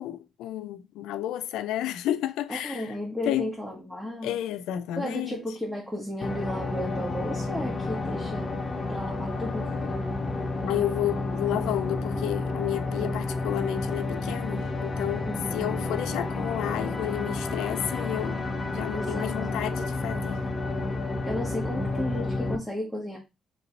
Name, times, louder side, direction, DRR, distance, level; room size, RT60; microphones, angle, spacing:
voice 1, 0.0-2.9 3.3-3.6 4.2-5.4 10.6-20.4, left 12 dB, 90° left, 0.4 m, -31 dB
voice 2, 2.5-4.4 5.0-8.5 8.9-10.0 13.0-13.2 15.3-15.6 18.9-19.3 21.3-23.2, equal, 5° right, 1.3 m, -34 dB
sound 1, 6.2-22.6, left 2 dB, 30° left, 0.8 m, -30 dB
3.2 x 3.0 x 3.9 m
cardioid pair, 90°, 0 cm